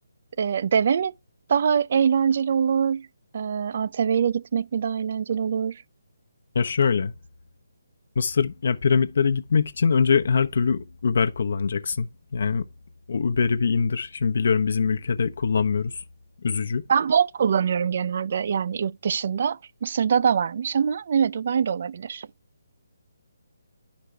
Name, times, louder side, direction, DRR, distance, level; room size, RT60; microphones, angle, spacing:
voice 1, 0.4-1.1 1.5-3.1 3.3-5.8 16.9-22.3, right 7 dB, 50° right, 0.4 m, -23 dB
voice 2, 6.5-7.1 8.2-12.7 13.1-16.0 16.4-16.8, left 5 dB, 60° left, 0.8 m, -23 dB
10.0 x 5.2 x 3.3 m
figure-of-eight pair, 155°, 0 cm